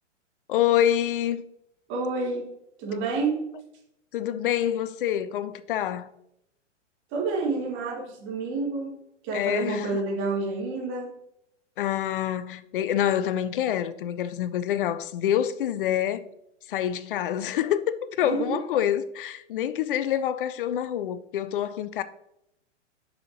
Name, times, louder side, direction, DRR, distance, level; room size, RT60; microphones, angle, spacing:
voice 1, 0.5-1.4 4.1-6.1 9.3-10.0 11.8-16.3 16.7-22.0, left 11 dB, 45° left, 0.5 m, -26 dB
voice 2, 1.9-2.5 2.8-3.4 7.1-9.0 9.2-11.1 18.2-18.6, right 3 dB, 30° right, 2.0 m, -29 dB
6.6 x 5.6 x 2.9 m
figure-of-eight pair, 110°, 37 cm